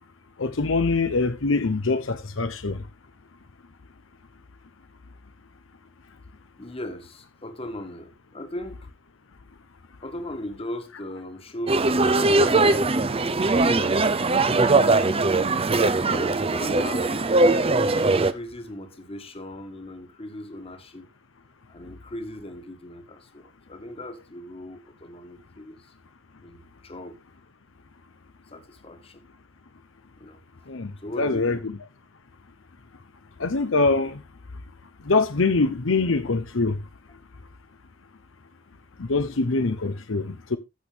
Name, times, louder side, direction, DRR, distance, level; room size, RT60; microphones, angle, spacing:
voice 1, 0.4-2.9 30.7-31.8 33.4-34.2 35.0-36.8 39.0-40.6, left 3 dB, 80° left, 0.8 m, -24 dB
voice 2, 6.6-8.9 10.0-12.9 13.5-14.1 14.4-15.6 16.0-17.6 18.1-21.1 21.7-25.9 26.4-27.2 28.5-29.3 30.2-30.4 31.0-31.7, left 1 dB, 30° left, 1.7 m, -38 dB
sound 1, 11.7-18.3, right 3 dB, 30° right, 0.7 m, -20 dB
14.5 x 6.3 x 3.4 m
head